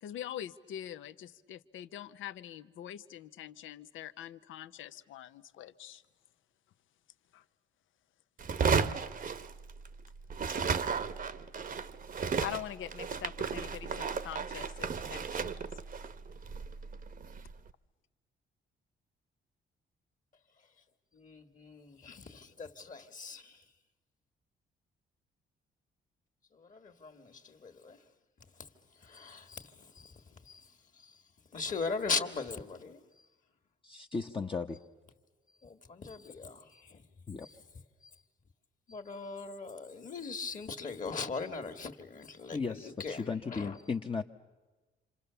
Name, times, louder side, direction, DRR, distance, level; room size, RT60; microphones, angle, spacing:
voice 1, 0.0-6.0 7.3-7.4 12.4-15.7, left 11 dB, 80° left, 0.8 m, -44 dB
sound 1, 8.4-10.0 10.3-17.5, right 5 dB, 45° right, 1.0 m, -34 dB
voice 2, 21.1-23.6 26.5-28.0 29.0-31.2 31.5-33.0 35.6-37.0 37.4-37.5 38.9-43.8, left 4 dB, 40° left, 1.8 m, -40 dB
voice 3, 33.8-34.8 37.3-37.5 42.5-44.2, left 4 dB, 25° left, 0.9 m, -35 dB
27.5 x 26.5 x 7.0 m
cardioid pair, 90°, 20 cm